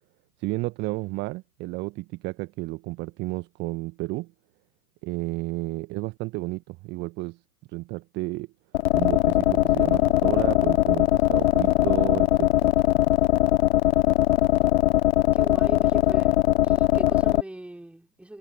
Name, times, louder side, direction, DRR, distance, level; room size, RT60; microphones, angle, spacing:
voice 1, 0.4-4.3 5.0-7.4 7.7-8.5 8.9-12.5, right 21 dB, 25° right, 1.3 m, -32 dB
sound 1, 8.7-17.4, left 15 dB, 40° left, 1.2 m, -20 dB
voice 2, 15.3-16.4 16.6-18.4, right 1 dB, 5° right, 4.4 m, -40 dB
figure-of-eight pair, 110°, 47 cm